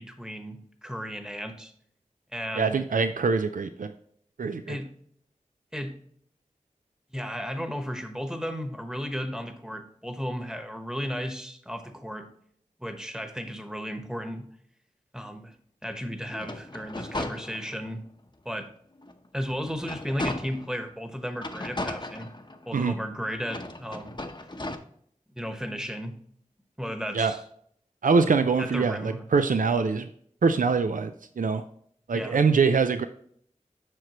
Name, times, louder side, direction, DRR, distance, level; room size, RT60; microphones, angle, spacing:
voice 1, 0.0-1.7 2.3-2.8 4.7-4.9 5.7-5.9 7.1-12.3 12.8-14.5 15.1-15.5 15.8-18.0 18.4-18.7 19.3-22.3 22.7-24.2 25.3-26.1 26.8-27.4 28.6-29.3 32.1-32.4, equal, 5° right, 6 dB, 1.1 m, -34 dB
voice 2, 2.6-3.9 4.4-4.8 22.7-22.9 27.1-27.3 28.0-30.1 30.4-31.6 32.1-33.1, right 4 dB, 80° right, 9 dB, 0.4 m, -24 dB
sound 1, 16.3-18.0 18.5-18.6 19.0-20.8 21.4-22.9 23.4-24.8, left 2 dB, 35° left, 0.8 m, -36 dB
7.8 x 5.9 x 3.0 m, 0.64 s
wide cardioid pair, 40°, 14 cm